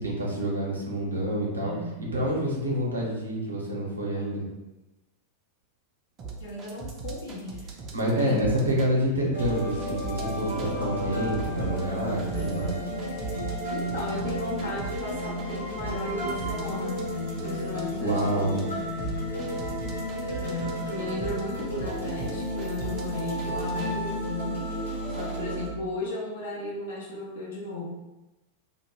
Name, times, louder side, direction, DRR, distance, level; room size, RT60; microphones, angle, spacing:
voice 1, 0.0-4.5 7.9-12.7 18.0-18.7, right 1 dB, 75° right, -3 dB, 0.6 m, -28 dB
voice 2, 1.6-2.0 6.4-7.7 8.1-8.4 11.9-12.7 13.7-17.1 17.4-18.7 20.3-24.7 25.1-27.8, left 2 dB, 65° left, -4 dB, 0.5 m, -35 dB
sound 1, 6.2-8.9 9.4-10.7 11.0-24.0 24.5-25.4, right 5 dB, 30° right, 0.4 m, -38 dB
sound 2, 9.3-25.7, equal, 90° left, 0.8 m, -32 dB
2.0 x 2.0 x 3.0 m, 1.0 s
figure-of-eight pair, 90°, 0 cm